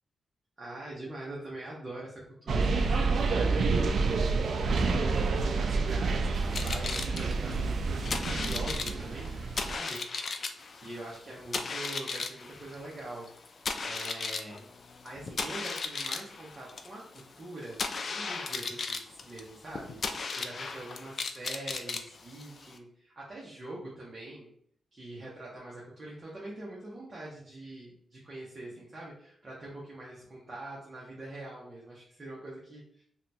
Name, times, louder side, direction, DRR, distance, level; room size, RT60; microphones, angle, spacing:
voice 1, 0.6-9.3 9.7-10.0 10.3-10.4 10.7-14.6 15.0-17.8 18.1-24.5 24.9-33.0, right 2 dB, 30° right, -5 dB, 0.8 m, -44 dB
sound 1, 2.5-9.8, right 4 dB, 65° right, 0.3 m, -28 dB
sound 2, 6.3-22.8, left 4 dB, 50° left, 0.3 m, -37 dB
2.8 x 2.2 x 4.0 m, 0.66 s
cardioid pair, 105°, 0 cm